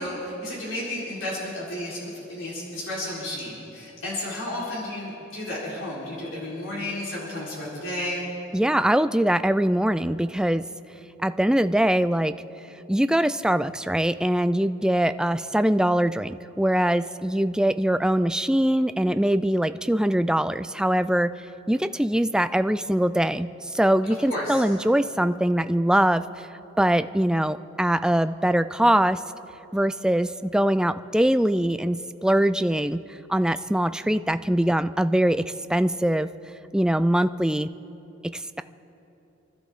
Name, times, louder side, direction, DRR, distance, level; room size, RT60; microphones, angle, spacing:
voice 1, 0.0-2.0 2.3-8.2 24.3-24.6, left 1 dB, 75° left, -7 dB, 3.9 m, -32 dB
voice 2, 8.5-10.7 11.2-12.3 12.9-21.3 21.7-26.5 26.8-29.2 29.7-33.0 33.3-36.3 36.7-37.7 38.2-38.6, right 1 dB, 5° right, 11 dB, 0.3 m, -22 dB
28.5 x 12.5 x 3.7 m, 2.9 s
head